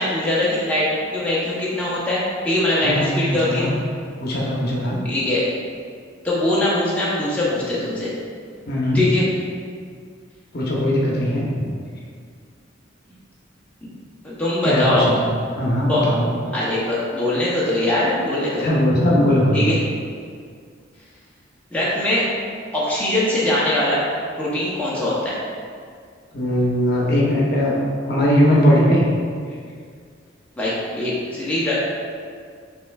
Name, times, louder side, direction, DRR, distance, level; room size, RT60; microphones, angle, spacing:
voice 1, 0.0-3.7 5.0-5.5 6.2-8.1 8.9-9.3 13.8-13.9 14.2-15.1 15.9-16.1 16.5-18.7 19.5-19.8 21.7-22.2 22.7-24.0 24.4-25.4 30.6-31.8, left 1 dB, 5° left, -8 dB, 0.6 m, -22 dB
voice 2, 2.8-3.7 4.2-5.0 8.7-9.0 10.5-11.5 14.6-16.3 18.6-19.8 26.3-27.8 28.1-29.1, equal, 55° left, -4 dB, 0.8 m, -19 dB
5.8 x 3.1 x 2.3 m, 2.1 s
head